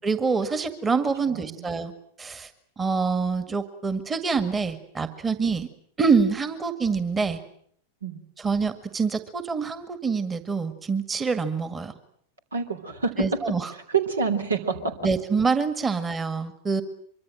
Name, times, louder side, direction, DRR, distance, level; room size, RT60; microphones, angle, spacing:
voice 1, 0.0-1.9 2.2-2.5 2.8-5.7 6.0-7.4 8.4-11.9 13.2-13.7 15.0-16.8, right 5 dB, 15° right, 11 dB, 1.9 m, -25 dB
voice 2, 1.3-1.7 8.0-8.2 12.5-13.2 13.9-14.9, right 5 dB, 75° right, 8 dB, 3.3 m, -27 dB
25.0 x 24.0 x 7.7 m, 0.65 s
figure-of-eight pair, 90°, 0 cm